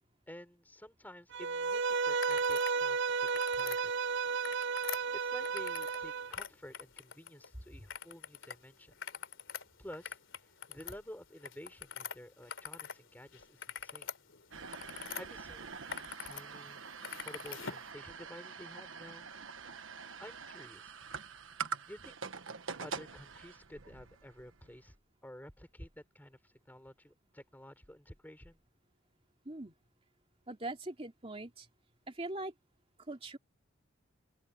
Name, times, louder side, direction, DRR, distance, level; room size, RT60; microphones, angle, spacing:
voice 1, 0.3-3.9 5.1-9.0 9.8-14.1 14.8-16.8 17.2-19.3 20.2-21.0 21.9-22.2 22.8-24.9 25.2-28.6, equal, 10° left, 4.3 m, -52 dB
Bowed string instrument, 1.3-6.3, right 5 dB, 60° right, 0.5 m, -33 dB
sound 1, 2.2-2.8 3.1-3.8 4.3-6.0 6.3-7.5 7.9-8.6 8.9-13.0 13.3-15.2 15.7-16.4 16.7-17.9, left 7 dB, 75° left, 3.1 m, -44 dB
sound 2, 14.5-24.9, right 5 dB, 90° right, 1.4 m, -45 dB
voice 2, 30.5-31.7 32.1-32.5 33.0-33.4, right 2 dB, 30° right, 2.8 m, -41 dB
open air
head